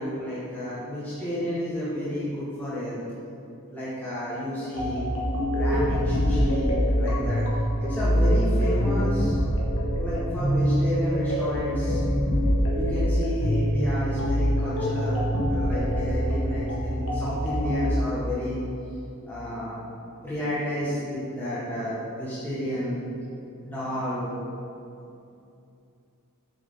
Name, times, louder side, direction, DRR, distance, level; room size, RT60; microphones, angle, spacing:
voice 1, 0.0-3.0 3.7-5.1 5.5-7.4 7.8-9.4 9.9-12.0 12.7-15.2 15.5-18.6 19.2-19.9 20.2-23.0 23.6-24.3, equal, 10° left, -11 dB, 1.6 m, -31 dB
sound 1, 4.8-17.9, equal, 65° left, 1.7 m, -24 dB
8.5 x 6.3 x 3.9 m, 2.7 s
head